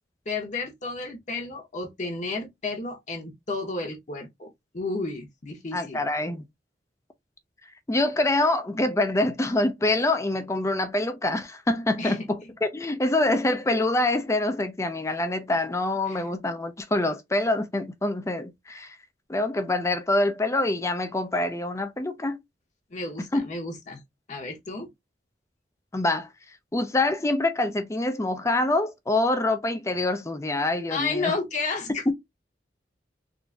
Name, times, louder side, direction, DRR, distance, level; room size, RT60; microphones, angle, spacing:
voice 1, 0.3-4.5 4.7-6.0 12.0-12.5 16.1-16.2 22.9-24.0 24.3-24.9 30.9-32.1, left 3 dB, 45° left, 0.9 m, -32 dB
voice 2, 5.7-6.4 7.9-19.0 19.3-22.4 23.3-23.4 25.9-26.3 26.7-31.3 32.1-32.2, left 2 dB, 15° left, 0.5 m, -25 dB
3.8 x 2.6 x 2.3 m
head